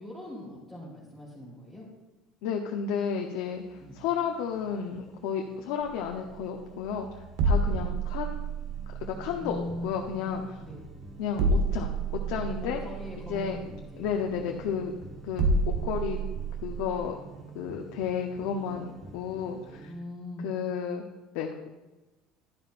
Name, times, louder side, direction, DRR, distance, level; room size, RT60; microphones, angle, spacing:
voice 1, 0.0-1.8 3.8-4.0 7.7-7.9 9.4-9.9 10.2-10.3 10.6-10.8 12.6-14.7 19.9-20.5, left 1 dB, 5° right, -10 dB, 3.3 m, -41 dB
voice 2, 2.4-7.1 7.4-8.4 9.0-10.6 11.2-12.8 13.3-13.6 14.0-14.9 15.2-16.2 16.6-17.1 17.5-19.9 20.4-21.0 21.3-21.7, left 7 dB, 85° left, 2 dB, 0.8 m, -32 dB
sound 1, 2.8-19.9, right 3 dB, 35° right, 1.6 m, -49 dB
sound 2, 5.8-17.0, right 3 dB, 90° right, 1.2 m, -30 dB
11.5 x 11.0 x 2.6 m, 1.1 s
cardioid pair, 150°, 0 cm